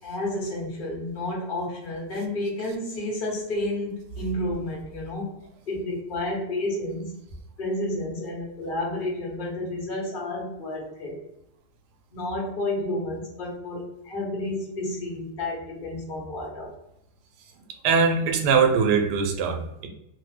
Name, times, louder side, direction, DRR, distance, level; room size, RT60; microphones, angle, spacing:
voice 1, 0.0-5.3 5.7-7.1 7.6-11.2 12.1-16.7, left 1 dB, 40° left, -3 dB, 0.9 m, -31 dB
voice 2, 17.8-19.9, right 5 dB, 85° right, 3 dB, 1.2 m, -21 dB
2.9 x 2.1 x 3.2 m, 0.81 s
omnidirectional pair, 1.7 m